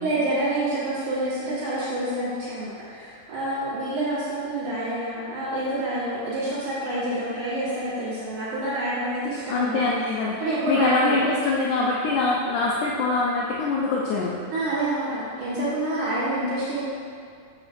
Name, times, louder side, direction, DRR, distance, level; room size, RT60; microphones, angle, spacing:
voice 1, 0.0-9.8 10.4-11.2 14.5-16.8, right 1 dB, 65° right, -12 dB, 2.9 m, -27 dB
voice 2, 9.5-10.4 10.7-14.4, left 3 dB, 75° left, -4 dB, 2.0 m, -24 dB
8.0 x 7.4 x 2.6 m, 2.4 s
omnidirectional pair, 3.9 m